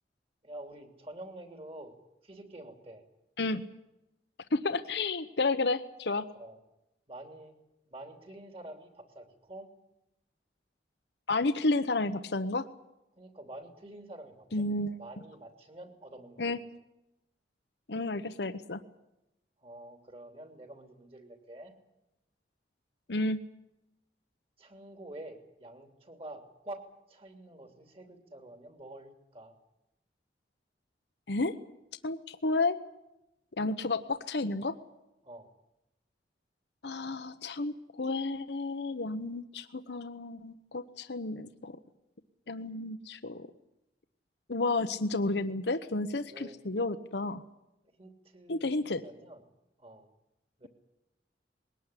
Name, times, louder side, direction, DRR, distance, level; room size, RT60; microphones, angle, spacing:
voice 1, 0.4-1.9 2.2-3.0 6.3-6.6 7.1-7.6 7.9-9.7 13.2-14.7 15.0-16.5 19.6-21.7 24.6-29.5 35.2-35.5 46.3-46.6 48.0-49.4 49.8-50.1 50.6-50.7, right 1 dB, 35° right, 6 dB, 3.1 m, -47 dB
voice 2, 4.5-6.2 11.3-12.7 14.5-15.0 16.4-16.6 17.9-18.8 23.1-23.4 31.3-31.5 32.0-32.8 33.6-34.8 36.8-41.8 42.5-43.5 44.5-47.4 48.5-49.0, left 2 dB, 75° left, 10 dB, 1.0 m, -31 dB
21.5 x 18.5 x 9.9 m, 0.91 s
head